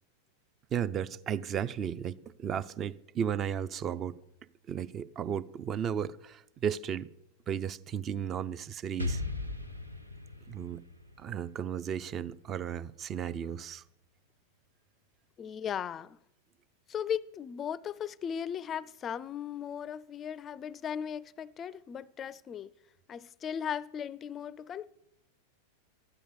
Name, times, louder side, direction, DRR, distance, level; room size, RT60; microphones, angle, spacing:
voice 1, 0.7-2.1 2.4-4.2 4.7-7.1 7.5-9.2 10.5-10.8 11.2-13.8, right 8 dB, 30° right, 0.5 m, -34 dB
Explosion, 9.0-12.8, left 3 dB, 85° right, 0.8 m, -38 dB
voice 2, 15.4-16.2 16.9-22.7 23.1-24.9, left 8 dB, 25° left, 0.4 m, -37 dB
12.5 x 10.0 x 6.7 m
figure-of-eight pair, 90°, 0 cm